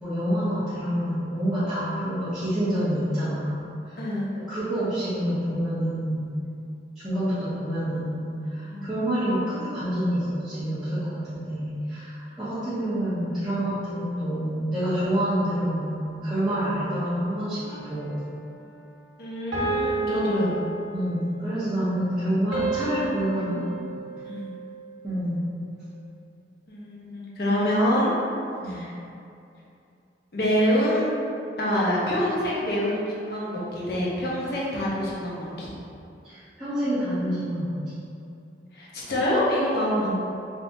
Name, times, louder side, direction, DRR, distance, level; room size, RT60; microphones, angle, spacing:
voice 1, 0.0-3.7 3.9-4.1 4.5-6.3 7.0-18.2 20.9-23.6 25.0-25.4 28.6-28.8 36.2-37.8, equal, 5° right, -17 dB, 0.7 m, -27 dB
voice 2, 4.0-4.3 8.7-8.9 19.2-20.5 24.2-24.5 26.7-28.1 28.6-28.9 30.3-31.1 31.6-35.7 38.7-40.1, equal, 55° left, -6 dB, 0.7 m, -26 dB
sound 1, 17.6-18.3 19.5-21.3 22.5-24.9, right 3 dB, 90° right, 0.8 m, -31 dB
3.5 x 2.7 x 2.6 m, 2.6 s
head